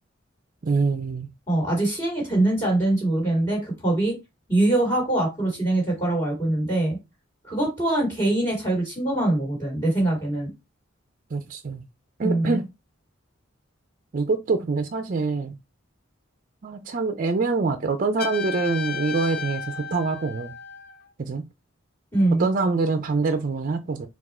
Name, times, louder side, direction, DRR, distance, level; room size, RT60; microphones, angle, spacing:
voice 1, 0.6-1.3 11.3-11.8 12.2-12.6 14.1-15.6 16.6-20.5 21.2-21.4 22.4-24.1, right 4 dB, 40° right, 0.4 m, -25 dB
voice 2, 1.5-4.2 4.5-7.0 7.4-10.5 12.2-12.6 22.1-22.5, right 1 dB, 20° left, 2.2 m, -23 dB
Trumpet, 18.2-21.0, left 6 dB, 50° left, 0.6 m, -33 dB
4.4 x 2.4 x 4.2 m
head